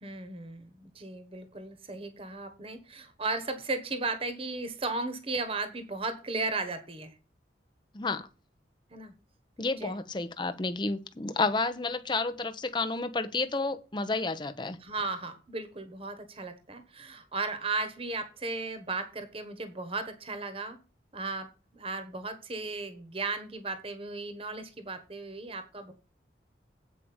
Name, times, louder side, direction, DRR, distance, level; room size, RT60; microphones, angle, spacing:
voice 1, 0.0-7.1 8.9-9.1 9.8-9.9 14.8-20.8 21.1-25.9, right 3 dB, 30° right, 9 dB, 1.2 m, -35 dB
voice 2, 7.9-8.3 9.6-14.8, left 3 dB, 25° left, 9 dB, 0.7 m, -31 dB
8.5 x 5.0 x 7.0 m, 0.32 s
head